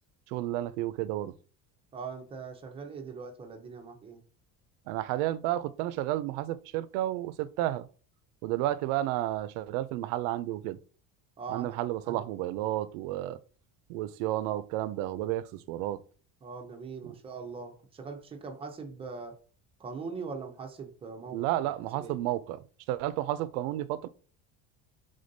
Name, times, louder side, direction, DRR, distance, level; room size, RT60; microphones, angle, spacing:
voice 1, 0.3-1.3 4.9-7.9 8.4-10.8 11.5-13.4 13.9-16.0 21.3-22.6 22.9-24.1, right 14 dB, 85° right, 0.5 m, -31 dB
voice 2, 1.9-4.2 11.4-11.7 12.1-12.2 16.4-19.4 19.8-22.2, right 5 dB, 15° right, 0.5 m, -41 dB
5.0 x 3.7 x 2.6 m
cardioid pair, 170°, 38 cm